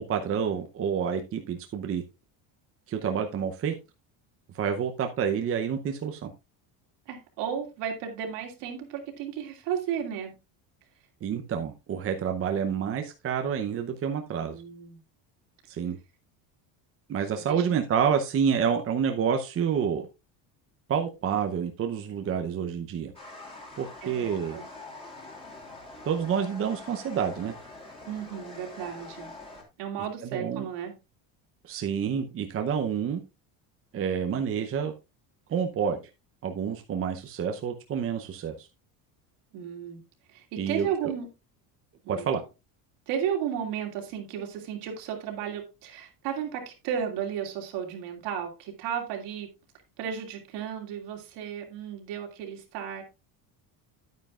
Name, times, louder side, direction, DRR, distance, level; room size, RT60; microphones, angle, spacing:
voice 1, 0.1-2.0 2.9-3.7 4.5-6.3 11.2-14.6 15.7-16.0 17.1-20.1 20.9-23.1 23.8-24.6 26.1-27.5 30.3-30.6 31.7-33.2 33.9-34.9 35.5-36.0 36.4-38.7 40.6-41.1 42.1-42.4, right 7 dB, 30° right, 0.8 m, -28 dB
voice 2, 7.1-10.3 14.4-15.0 17.3-18.1 24.0-24.6 28.1-29.3 29.8-30.9 39.5-40.0 40.3-41.3 42.0-42.3 43.1-49.5 50.0-53.0, right 8 dB, 70° right, 2.7 m, -34 dB
sound 1, 23.1-29.6, left 2 dB, 15° left, 2.6 m, -44 dB
9.6 x 9.3 x 2.4 m
cardioid pair, 135°, 43 cm